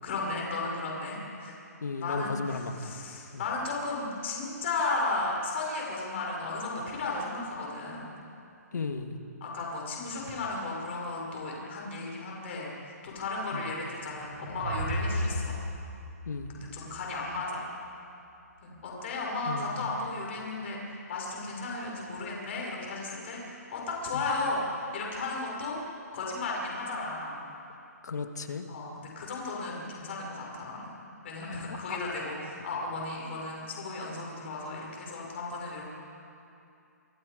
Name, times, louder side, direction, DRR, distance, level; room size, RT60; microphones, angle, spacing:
voice 1, 0.0-1.6 2.0-8.1 9.4-15.6 16.5-17.6 18.6-25.8 26.1-27.4 28.7-30.9 31.2-35.8, left 3 dB, 45° left, -2 dB, 5.9 m, -34 dB
voice 2, 1.8-2.9 8.7-9.2 13.5-13.6 16.3-16.5 19.5-19.8 24.1-24.2 28.0-28.6 31.9-32.0, left 4 dB, 80° left, 6 dB, 1.9 m, -34 dB
sound 1, 14.0-17.3, equal, 70° right, 5.5 m, -34 dB
28.0 x 20.5 x 5.2 m, 2.7 s
hypercardioid pair, 165°, 9 cm